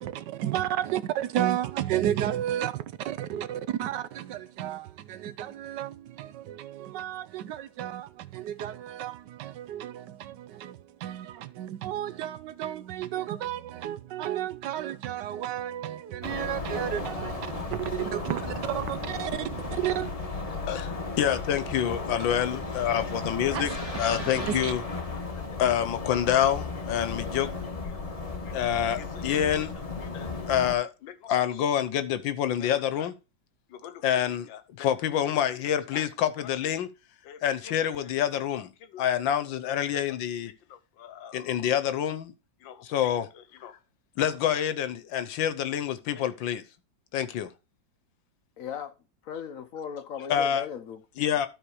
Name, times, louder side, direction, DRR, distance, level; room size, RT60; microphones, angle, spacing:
voice 1, 0.0-20.1 23.5-23.8 24.4-24.7, right 12 dB, 75° right, 1.2 m, -32 dB
sound 1, 16.2-30.7, left 3 dB, 25° left, 1.0 m, -35 dB
voice 2, 20.7-23.7 24.0-24.8 25.6-27.5 28.5-29.7 30.1-33.1 33.7-36.9 37.2-40.5 41.0-42.3 42.6-43.7 44.2-46.6 47.1-47.5 50.3-50.6 51.2-51.5, left 10 dB, 85° left, 1.6 m, -27 dB
voice 3, 48.6-49.0 49.2-51.0, left 8 dB, 60° left, 0.9 m, -37 dB
12.5 x 4.3 x 4.7 m
omnidirectional pair, 2.0 m